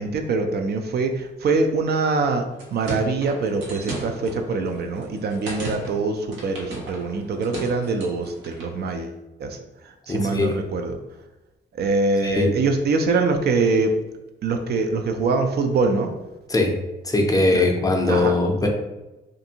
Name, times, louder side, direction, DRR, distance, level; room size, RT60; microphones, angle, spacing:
voice 1, 0.0-2.4 2.7-9.6 9.8-11.0 11.7-14.0 14.4-16.1 17.5-17.7 18.1-18.3, right 3 dB, 55° right, 5 dB, 0.4 m, -24 dB
sound 1, 2.4-8.8, right 3 dB, 85° right, 0.8 m, -36 dB
voice 2, 10.1-10.6 12.2-12.5 16.5-16.8 17.0-18.7, left 2 dB, 20° left, 2 dB, 0.5 m, -20 dB
2.5 x 2.5 x 2.7 m, 1.0 s
cardioid pair, 90°, 20 cm